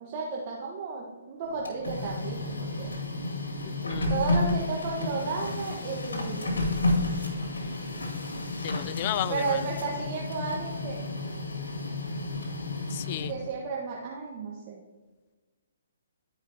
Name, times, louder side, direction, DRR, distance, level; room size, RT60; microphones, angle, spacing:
voice 1, 0.0-3.0 4.1-6.6 9.3-11.0 13.3-14.8, right 4 dB, 35° right, -3 dB, 1.2 m, -33 dB
Printer, 1.5-13.5, left 2 dB, 85° left, 2.1 m, -31 dB
voice 2, 3.7-4.1 8.6-9.6 12.9-13.3, left 13 dB, 35° left, 17 dB, 0.3 m, -33 dB
13.5 x 4.9 x 2.8 m, 1.3 s
hypercardioid pair, 145°, 0 cm